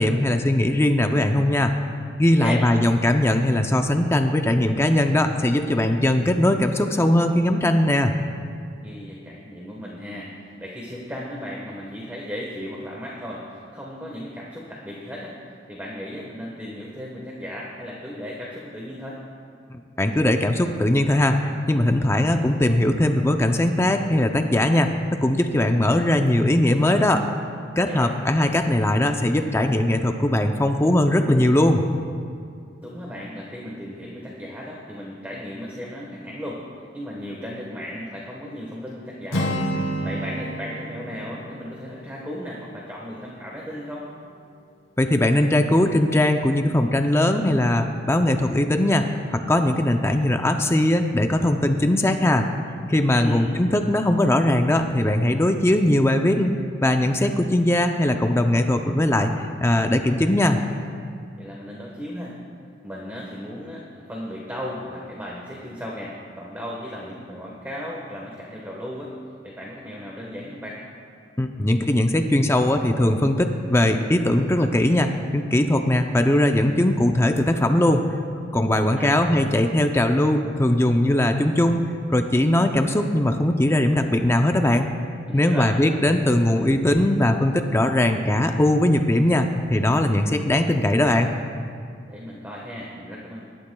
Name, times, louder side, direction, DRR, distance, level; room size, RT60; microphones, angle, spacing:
voice 1, 0.0-1.7 2.2-8.1 19.7-21.4 21.7-27.2 27.8-31.8 45.0-49.1 49.3-52.4 52.9-60.6 71.4-78.0 78.5-84.9 85.3-91.3, left 1 dB, 15° left, 5 dB, 0.5 m, -20 dB
voice 2, 8.8-19.2 27.8-28.1 32.8-36.6 36.9-44.0 53.1-53.4 61.4-62.3 62.8-69.1 69.4-70.8 78.9-79.2 85.2-85.7 92.1-93.5, equal, 10° right, -4 dB, 1.2 m, -35 dB
Acoustic guitar, 39.3-43.2, right 1 dB, 85° left, 2.2 m, -30 dB
24.0 x 11.5 x 2.3 m, 2.3 s
head